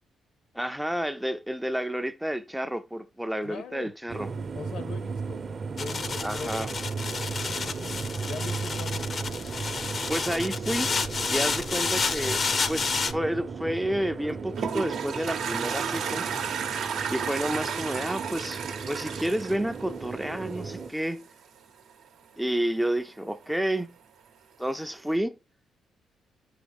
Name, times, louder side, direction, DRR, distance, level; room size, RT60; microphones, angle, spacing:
voice 1, 0.5-4.3 6.2-6.7 10.1-10.9 11.3-16.3 17.1-21.2 22.4-23.9 24.6-25.4, right 1 dB, 5° right, 0.4 m, -30 dB
voice 2, 3.4-3.9 4.5-5.4 5.7-6.5 7.5-8.0 8.3-9.0, left 5 dB, 70° left, 0.8 m, -40 dB
sound 1, 4.1-20.9, right 4 dB, 40° right, 0.7 m, -35 dB
sound 2, 5.8-13.1, left 5 dB, 45° left, 0.5 m, -30 dB
Toilet flush, 14.2-20.6, right 7 dB, 75° right, 0.8 m, -32 dB
9.2 x 4.8 x 3.4 m
cardioid pair, 90°, 0 cm